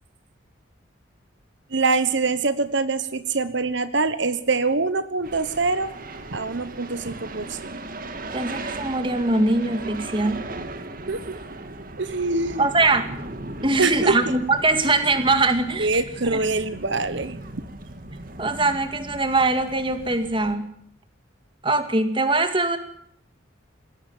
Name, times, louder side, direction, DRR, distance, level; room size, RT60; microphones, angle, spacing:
voice 1, 1.7-5.9 6.3-7.8 11.1-11.4 12.0-12.7 13.8-14.2 15.8-17.6, right 3 dB, 60° right, 13 dB, 1.2 m, -24 dB
sound 1, 5.2-20.5, right 2 dB, 45° right, 2.0 m, -37 dB
voice 2, 8.3-10.5 12.6-13.1 13.6-16.0 16.3-16.5 18.4-20.7 21.6-22.8, right 2 dB, 25° right, 9 dB, 2.0 m, -22 dB
20.5 x 17.0 x 7.4 m, 0.69 s
head